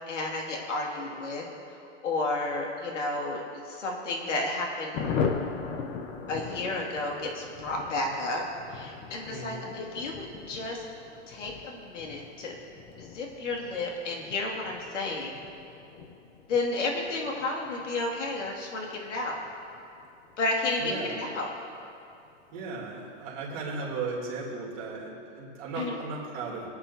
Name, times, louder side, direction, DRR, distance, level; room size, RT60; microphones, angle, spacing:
voice 1, 0.1-1.4 2.0-5.0 6.3-8.4 8.7-10.8 11.3-12.6 13.0-15.4 16.5-19.4 20.4-21.5 25.8-26.0, left 2 dB, 80° left, -1 dB, 2.5 m, -32 dB
Thunder, 4.9-21.1 21.3-21.4 21.7-21.9 22.1-22.5, left 5 dB, 15° left, 0.5 m, -39 dB
voice 2, 9.3-9.7 20.8-21.2 22.5-26.7, right 3 dB, 35° right, -4 dB, 3.2 m, -36 dB
22.5 x 9.7 x 2.8 m, 2.6 s
hypercardioid pair, 155°, 36 cm